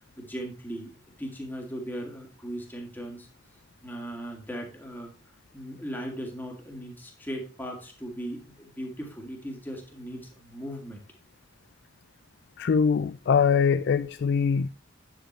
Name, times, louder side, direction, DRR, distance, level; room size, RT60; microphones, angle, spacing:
voice 1, 0.2-0.9 1.2-3.3 3.8-5.1 5.5-11.0, equal, 10° left, 2.1 m, -38 dB
voice 2, 12.6-14.7, left 6 dB, 55° left, 0.3 m, -23 dB
9.0 x 7.7 x 3.2 m
head